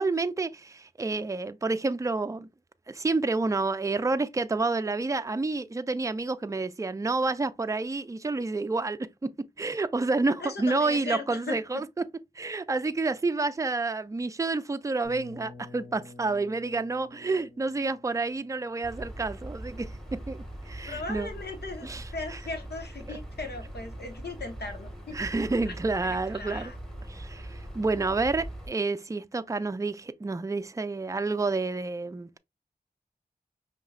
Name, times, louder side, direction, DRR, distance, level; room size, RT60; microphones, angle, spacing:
voice 1, 0.0-2.5 2.9-9.3 9.6-12.0 12.4-21.3 21.8-22.4 23.1-23.2 25.1-26.7 27.1-32.4, right 3 dB, 20° right, 0.4 m, -29 dB
voice 2, 10.4-11.6 20.9-25.2 25.6-25.7 26.0-26.8, left 3 dB, 85° left, 1.1 m, -38 dB
sound 1, 15.0-20.8, left 2 dB, 55° left, 1.7 m, -50 dB
sound 2, 18.8-28.7, right 1 dB, 5° left, 1.5 m, -41 dB
5.3 x 2.9 x 2.4 m
cardioid pair, 45°, 17 cm